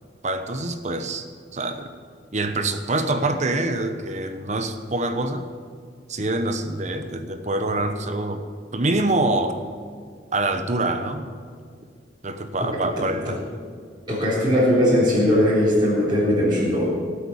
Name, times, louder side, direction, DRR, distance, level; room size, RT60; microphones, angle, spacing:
voice 1, 0.2-1.2 1.5-1.9 2.3-5.5 6.1-8.4 8.7-9.6 10.3-11.3 12.2-13.4, right 2 dB, 40° right, 8 dB, 1.1 m, -25 dB
voice 2, 14.1-16.9, equal, 25° right, -11 dB, 4.2 m, -19 dB
18.5 x 8.4 x 7.2 m, 2.1 s
head